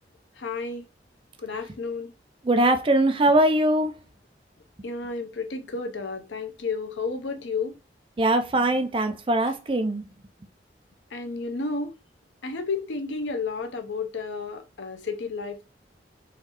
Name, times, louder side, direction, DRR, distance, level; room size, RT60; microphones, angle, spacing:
voice 1, 0.4-0.8 1.4-2.1 4.8-7.7 11.1-11.9 12.4-15.6, left 4 dB, 85° left, 0.7 m, -32 dB
voice 2, 2.4-3.9 8.2-10.1, right 1 dB, 30° right, 0.4 m, -21 dB
3.9 x 3.1 x 2.9 m
head